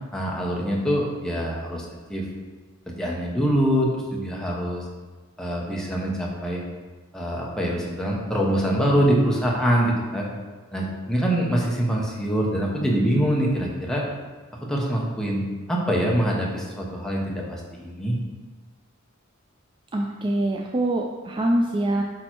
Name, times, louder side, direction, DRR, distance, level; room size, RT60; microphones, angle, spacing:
voice 1, 0.1-2.2 2.9-4.8 5.4-6.6 7.1-10.3 10.7-14.0 14.7-18.2, equal, 5° left, -3 dB, 1.0 m, -24 dB
voice 2, 19.9-22.0, right 1 dB, 25° right, 1 dB, 0.4 m, -24 dB
8.5 x 3.2 x 4.6 m, 1.4 s
head